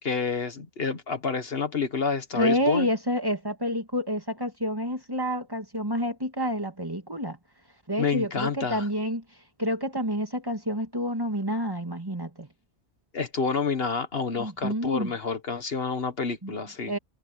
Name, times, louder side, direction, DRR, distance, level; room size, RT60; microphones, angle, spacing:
voice 1, 0.0-2.9 8.0-8.9 13.1-16.9, left 5 dB, 60° left, 1.6 m, -29 dB
voice 2, 2.3-7.4 7.9-9.2 9.6-12.5 14.4-15.1 16.4-16.5 16.9-17.0, equal, 20° right, 2.2 m, -28 dB
omnidirectional pair, 1.1 m